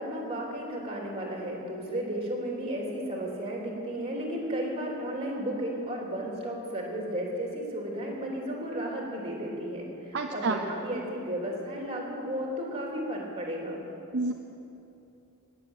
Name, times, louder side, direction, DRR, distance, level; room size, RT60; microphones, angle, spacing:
voice 1, 0.0-13.8, right 1 dB, 25° right, -2 dB, 3.1 m, -34 dB
voice 2, 10.1-10.6 14.1-14.3, right 3 dB, 55° right, 3 dB, 0.7 m, -28 dB
20.0 x 7.1 x 9.0 m, 2.9 s
head